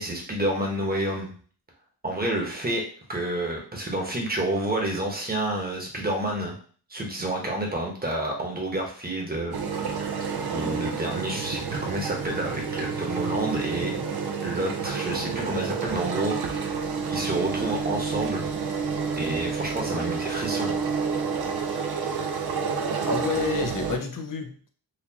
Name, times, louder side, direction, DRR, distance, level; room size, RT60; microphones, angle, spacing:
voice 1, 0.0-1.3 2.0-2.8 3.1-6.6 6.9-9.5 10.5-14.0 14.4-16.8 17.1-18.5 19.2-20.7, right 1 dB, 20° right, 0 dB, 1.2 m, -29 dB
sound 1, 9.5-24.0, right 5 dB, 60° right, 0.7 m, -29 dB
voice 2, 23.0-24.7, left 5 dB, 50° left, 5 dB, 0.7 m, -29 dB
4.2 x 2.5 x 2.8 m, 0.43 s
wide cardioid pair, 80°, 42 cm